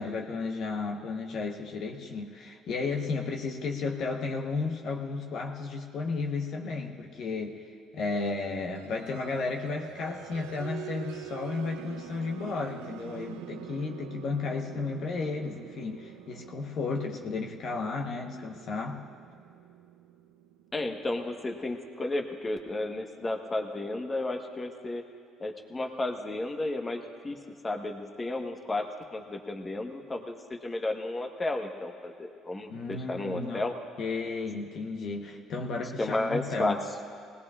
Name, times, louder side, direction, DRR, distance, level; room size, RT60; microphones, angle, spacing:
voice 1, 0.0-19.0 32.7-33.6 34.0-36.8, left 4 dB, 60° left, 2 dB, 1.1 m, -33 dB
sound 1, 8.7-21.3, right 11 dB, 85° right, 0.5 m, -45 dB
voice 2, 20.7-25.0 25.4-27.4 27.6-33.7 36.0-36.8, left 2 dB, 25° left, 4 dB, 1.2 m, -33 dB
19.0 x 18.0 x 2.5 m, 2.3 s
supercardioid pair, 65°, 0 cm